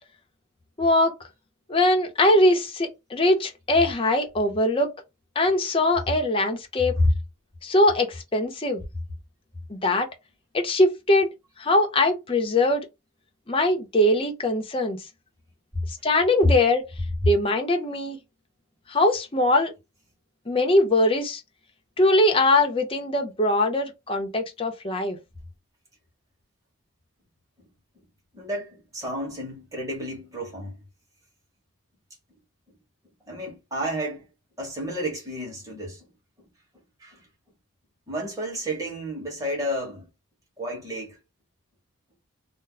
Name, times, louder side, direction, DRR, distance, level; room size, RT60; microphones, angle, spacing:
voice 1, 0.8-1.1 1.7-4.9 5.4-7.0 7.6-8.8 9.7-10.1 10.5-11.3 11.6-12.9 13.5-15.0 16.0-16.8 17.3-18.2 18.9-19.7 20.5-21.4 22.0-25.2, left 1 dB, 25° left, 0.6 m, -21 dB
voice 2, 28.3-30.8 33.3-34.3 34.6-36.1 37.0-37.3 38.1-40.1 40.6-41.2, equal, 15° right, 1.2 m, -30 dB
2.7 x 2.0 x 3.8 m
head